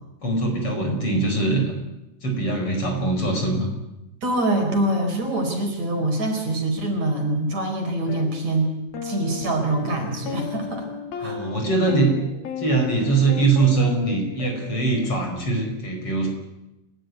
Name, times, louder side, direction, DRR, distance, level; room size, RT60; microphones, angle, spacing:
voice 1, 0.2-1.8 2.2-3.7 11.2-12.1 12.6-16.3, right 3 dB, 35° left, 3 dB, 6.0 m, -22 dB
voice 2, 4.2-8.7 9.0-10.9 11.2-11.4, right 1 dB, 50° right, 3 dB, 5.3 m, -24 dB
sound 1, 8.1-8.3 8.9-15.3, left 6 dB, 75° left, 4.0 m, -34 dB
29.0 x 15.5 x 9.5 m, 0.94 s
omnidirectional pair, 4.2 m